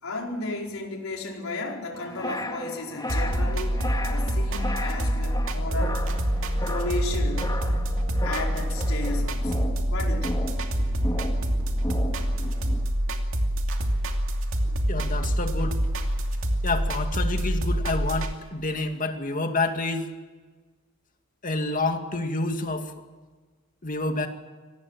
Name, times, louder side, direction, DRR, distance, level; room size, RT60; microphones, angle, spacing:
voice 1, 0.0-3.8 4.1-6.0 6.6-7.5 8.2-10.5 14.6-14.8, left 2 dB, 75° left, 0 dB, 4.7 m, -34 dB
sound 1, 1.9-12.8, left 1 dB, 20° left, 2.0 m, -35 dB
sound 2, 3.1-18.3, equal, 65° right, 2.6 m, -26 dB
voice 2, 14.9-15.8 16.6-20.1 21.4-22.9 23.8-24.3, left 2 dB, 40° left, 5 dB, 2.3 m, -28 dB
25.0 x 19.0 x 7.5 m, 1.3 s
head